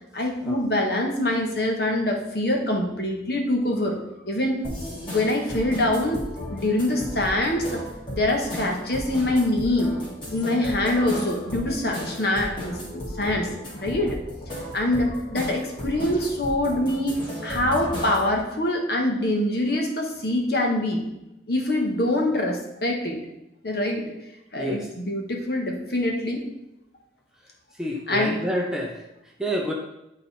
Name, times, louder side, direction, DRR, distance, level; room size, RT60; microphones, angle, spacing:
voice 1, 0.1-4.6 4.9-6.2 6.5-7.8 8.1-9.9 10.3-14.2 14.7-17.1 17.4-21.0 21.5-23.2 23.6-24.0 24.5-26.4 28.1-28.4, left 1 dB, 55° left, 2 dB, 1.3 m, -24 dB
sound 1, 4.6-18.4, equal, 25° left, 2.1 m, -35 dB
voice 2, 24.6-24.9 27.8-29.0 29.4-29.7, equal, 5° right, -1 dB, 0.8 m, -28 dB
9.1 x 4.1 x 4.2 m, 0.89 s
head